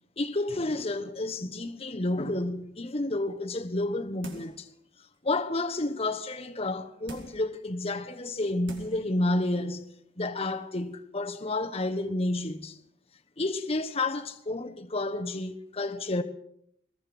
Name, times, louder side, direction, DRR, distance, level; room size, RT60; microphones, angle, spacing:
voice 1, 0.2-4.7 5.2-12.8 13.4-16.2, left 2 dB, 30° left, 1.2 m, -30 dB
sound 1, 4.2-4.7 5.1-5.2 7.1-7.5 8.2-8.3 8.7-9.1 9.5-9.6, right 1 dB, 70° right, 4.7 m, -44 dB
21.5 x 21.0 x 6.2 m
head